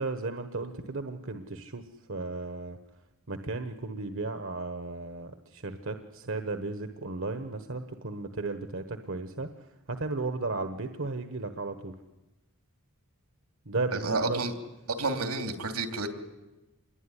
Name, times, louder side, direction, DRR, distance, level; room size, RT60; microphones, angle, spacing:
voice 1, 0.0-1.8 2.1-2.8 3.3-11.9 13.6-14.5, right 3 dB, 60° right, 8 dB, 1.3 m, -35 dB
voice 2, 13.9-14.5 14.9-16.1, right 3 dB, 85° right, 6 dB, 3.0 m, -30 dB
27.0 x 21.5 x 10.0 m, 1.1 s
head